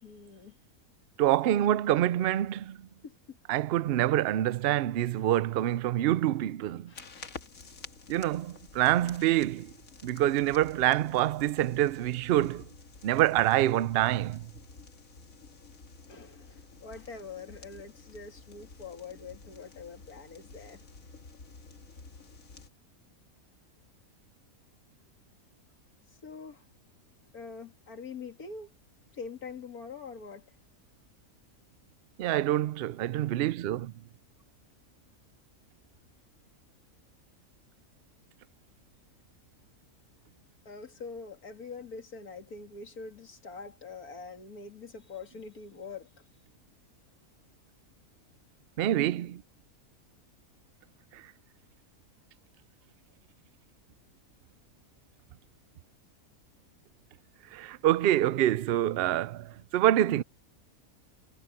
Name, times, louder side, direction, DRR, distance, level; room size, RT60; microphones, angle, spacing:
voice 1, 0.0-0.5 1.4-1.5 3.0-3.4 6.9-7.3 16.1-20.8 26.2-26.6 27.3-28.7 29.1-30.5 40.7-46.1, left 4 dB, 85° left, 2.7 m, -44 dB
voice 2, 1.2-2.8 3.5-6.9 8.1-9.7 10.0-12.6 13.0-14.5 32.2-33.9 48.8-49.3 51.1-51.2 57.5-60.2, right 13 dB, 65° right, 0.6 m, -26 dB
sound 1, 6.9-22.7, left 4 dB, 65° left, 2.3 m, -51 dB
omnidirectional pair, 1.5 m